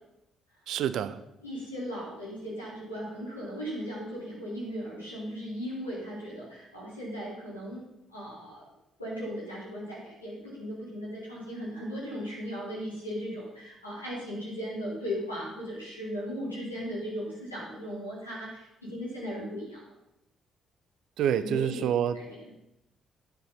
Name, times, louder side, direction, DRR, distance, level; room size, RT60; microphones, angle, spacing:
voice 1, 0.7-1.2 21.2-22.2, right 9 dB, 60° right, 14 dB, 0.7 m, -27 dB
voice 2, 1.4-7.8 8.1-8.6 9.0-19.8 21.4-21.8 22.1-22.4, equal, 90° left, -7 dB, 4.3 m, -37 dB
10.5 x 10.5 x 5.7 m, 0.88 s
figure-of-eight pair, 45°, 0 cm